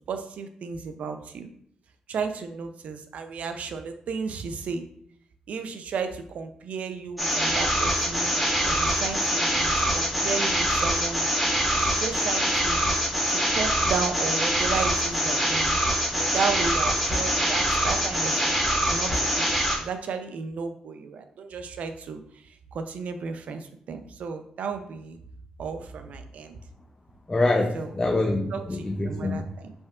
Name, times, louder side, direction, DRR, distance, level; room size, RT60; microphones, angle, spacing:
voice 1, 0.1-1.5 2.1-4.8 5.5-8.3 8.6-11.3 11.7-12.8 13.3-15.8 16.2-19.5 19.8-22.4 22.7-25.2 25.6-26.6 27.7-27.9 28.5-29.7, right 5 dB, 70° right, 8 dB, 0.5 m, -33 dB
sound 1, 7.2-19.8, equal, 5° right, 1.8 m, -24 dB
voice 2, 27.3-29.5, left 2 dB, 25° left, 2 dB, 0.5 m, -25 dB
5.1 x 3.6 x 2.4 m, 0.66 s
cardioid pair, 80°, 2 cm